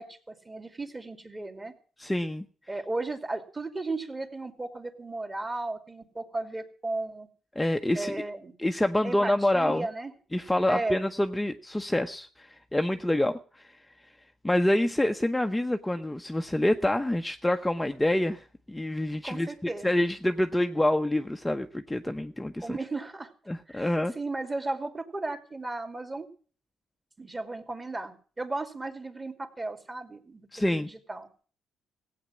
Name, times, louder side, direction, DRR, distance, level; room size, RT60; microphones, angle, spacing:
voice 1, 0.0-1.7 2.7-7.3 7.9-8.5 9.0-10.1 10.7-11.0 19.2-20.0 22.6-23.3 23.7-26.3 27.2-31.3, right 2 dB, 20° right, 7 dB, 2.6 m, -35 dB
voice 2, 2.0-2.5 7.6-8.1 8.6-9.9 10.3-13.7 14.4-22.8 23.5-24.1 30.5-30.9, left 1 dB, 10° left, 6 dB, 0.8 m, -27 dB
16.5 x 8.7 x 7.2 m, 0.42 s
cardioid pair, 90°, 0 cm